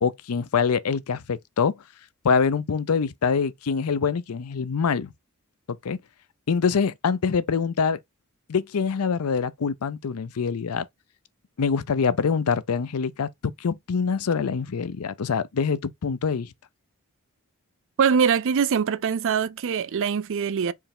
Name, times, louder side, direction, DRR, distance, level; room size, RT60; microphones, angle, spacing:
voice 1, 0.0-1.7 2.2-5.1 5.7-6.0 6.5-8.0 8.5-10.9 11.6-16.5, left 5 dB, 90° left, 0.5 m, -25 dB
voice 2, 18.0-20.7, right 6 dB, 60° right, 0.4 m, -23 dB
4.6 x 3.2 x 3.6 m
head